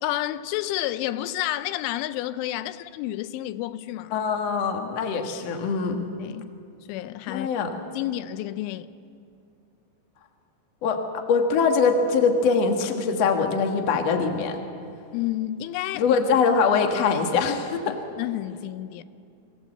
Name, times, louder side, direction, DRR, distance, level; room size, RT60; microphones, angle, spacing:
voice 1, 0.0-4.1 6.2-6.5 6.9-7.5 7.9-8.9 15.1-16.2 18.2-19.0, left 14 dB, 90° left, 3.1 m, -30 dB
voice 2, 4.1-6.0 7.3-7.7 10.8-11.0 11.3-14.6 15.9-18.0, left 5 dB, 70° left, 1.5 m, -23 dB
24.5 x 16.0 x 7.7 m
omnidirectional pair, 5.4 m